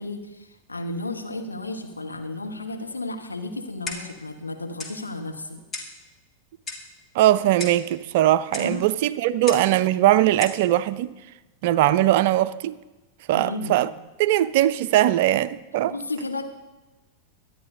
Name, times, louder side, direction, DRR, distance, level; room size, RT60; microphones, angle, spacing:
voice 1, 0.0-5.6 8.6-8.8 13.3-13.8 15.9-16.5, left 2 dB, 80° left, 1.3 m, -33 dB
Clock, 3.9-4.2 4.8-5.0 5.7-6.0 6.7-6.9 7.6-7.9 8.5-8.7 9.5-9.7 10.4-10.6, left 3 dB, 20° left, 2.0 m, -35 dB
voice 2, 7.1-11.1 11.6-12.8 13.3-13.9 14.2-15.9, right 13 dB, 50° right, 0.5 m, -20 dB
23.5 x 10.0 x 2.8 m
figure-of-eight pair, 90°, 0 cm